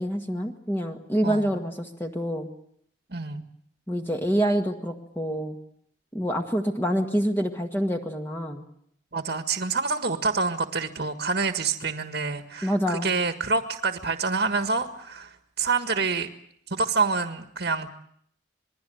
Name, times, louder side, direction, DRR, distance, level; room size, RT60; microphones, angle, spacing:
voice 1, 0.0-2.5 3.9-5.6 6.1-8.6 12.6-13.1, equal, 10° left, 3 dB, 1.7 m, -26 dB
voice 2, 3.1-3.4 9.1-16.3 16.7-17.9, right 4 dB, 55° right, 7 dB, 1.6 m, -27 dB
27.5 x 21.5 x 7.8 m, 0.68 s
head